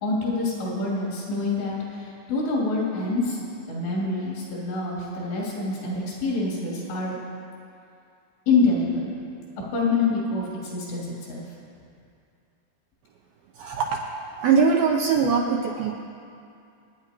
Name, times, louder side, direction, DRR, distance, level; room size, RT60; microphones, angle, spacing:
voice 1, 0.0-3.4 3.7-7.2 8.5-9.1 9.7-11.4, left 3 dB, 75° left, -6 dB, 5.3 m, -26 dB
voice 2, 13.6-15.9, right 5 dB, 80° right, 0 dB, 2.2 m, -22 dB
27.5 x 9.9 x 3.0 m, 2.5 s
omnidirectional pair, 5.0 m